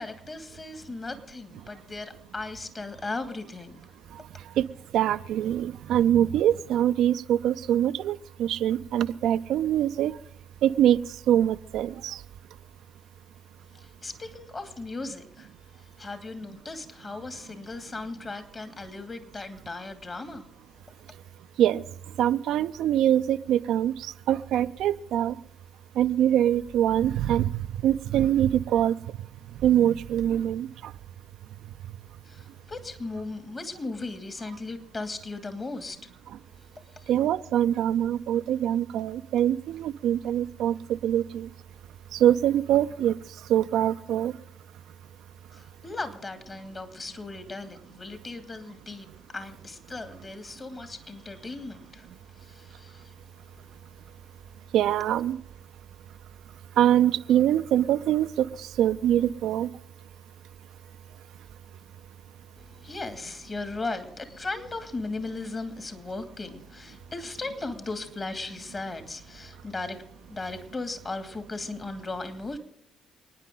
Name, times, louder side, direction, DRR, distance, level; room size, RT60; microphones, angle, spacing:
voice 1, 0.0-3.7 13.8-20.5 32.2-36.0 36.8-37.1 45.5-49.1 49.3-52.1 52.3-53.1 53.6-53.7 62.6-72.6, left 3 dB, 35° left, 2.5 m, -37 dB
voice 2, 4.9-10.1 10.6-11.0 11.3-12.1 21.6-21.8 22.2-23.9 24.3-25.3 26.0-27.5 27.8-28.9 29.6-30.7 37.1-40.7 41.0-41.2 42.2-43.1 43.5-44.3 54.7-55.4 56.8-58.3 58.8-59.7, right 11 dB, 65° right, 0.4 m, -23 dB
28.0 x 9.9 x 3.9 m
hypercardioid pair, 45°, 0 cm